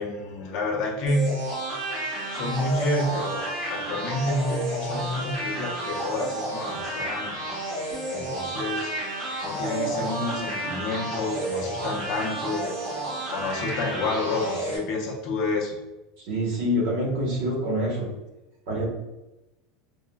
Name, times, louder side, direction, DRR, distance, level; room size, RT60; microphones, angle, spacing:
voice 1, 0.0-1.3 2.3-7.6 8.1-8.9 9.4-13.0 13.3-15.8, left 2 dB, 45° left, -2 dB, 0.6 m, -29 dB
sound 1, 1.1-14.8, right 1 dB, 40° right, 1.1 m, -31 dB
voice 2, 16.3-18.1 18.7-18.9, equal, 70° right, -2 dB, 1.0 m, -26 dB
3.4 x 2.1 x 2.2 m, 0.99 s
supercardioid pair, 160°, 0 cm